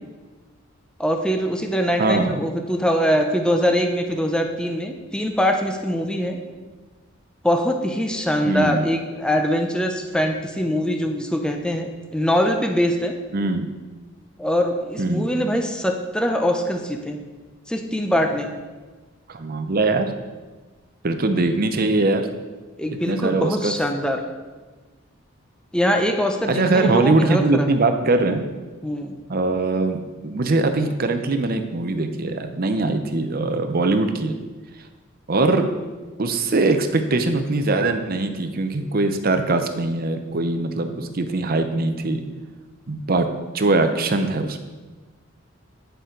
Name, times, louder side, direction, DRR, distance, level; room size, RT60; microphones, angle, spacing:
voice 1, 1.0-6.4 7.4-11.9 12.1-13.1 14.4-17.2 17.7-18.5 22.8-24.2 25.7-27.7 28.8-29.1, equal, 5° left, 4 dB, 0.6 m, -22 dB
voice 2, 2.0-2.4 8.5-8.8 13.3-13.7 15.0-15.3 19.3-20.1 21.0-22.3 22.9-23.7 26.5-28.4 29.3-30.0 30.2-34.3 35.3-35.7 36.2-42.2 42.9-44.6, right 2 dB, 45° right, 7 dB, 0.7 m, -21 dB
9.3 x 6.8 x 3.8 m, 1.3 s
head